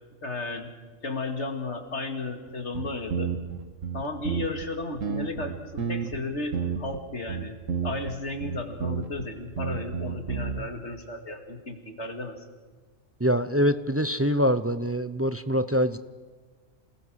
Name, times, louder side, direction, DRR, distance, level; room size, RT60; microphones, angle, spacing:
voice 1, 0.2-0.7 1.0-3.3 3.9-7.6 7.8-12.4, left 2 dB, 60° left, 5 dB, 2.6 m, -34 dB
sound 1, 2.5-2.6 2.8-4.7 5.0-6.2 6.5-7.0 7.3-8.1 8.4-9.3 9.6-10.6, right 7 dB, 85° right, 1.7 m, -30 dB
voice 2, 13.2-16.0, equal, 20° right, 12 dB, 0.4 m, -24 dB
28.5 x 20.0 x 6.4 m, 1.4 s
omnidirectional pair, 1.3 m